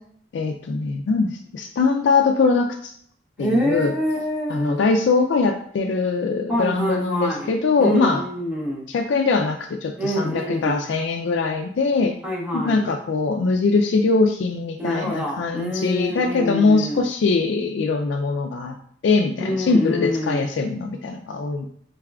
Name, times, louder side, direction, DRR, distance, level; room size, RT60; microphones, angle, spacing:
voice 1, 0.3-2.9 3.4-3.9 4.5-8.2 8.9-12.1 12.5-18.8 19.0-21.7, left 4 dB, 80° left, 3 dB, 0.3 m, -22 dB
voice 2, 3.4-4.7 6.5-7.5 7.8-8.9 10.0-10.8 12.2-12.9 14.8-17.0 19.4-20.4, equal, 5° right, -5 dB, 0.6 m, -26 dB
4.0 x 3.5 x 2.3 m, 0.65 s
head